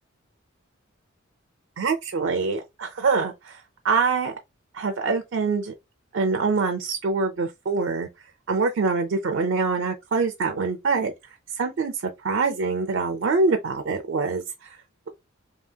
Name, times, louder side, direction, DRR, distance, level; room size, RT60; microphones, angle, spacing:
voice 1, 1.8-4.3 4.7-5.7 6.1-8.1 8.5-11.1 11.6-14.4, right 4 dB, 65° right, 0.4 m, -24 dB
2.7 x 2.7 x 2.2 m
head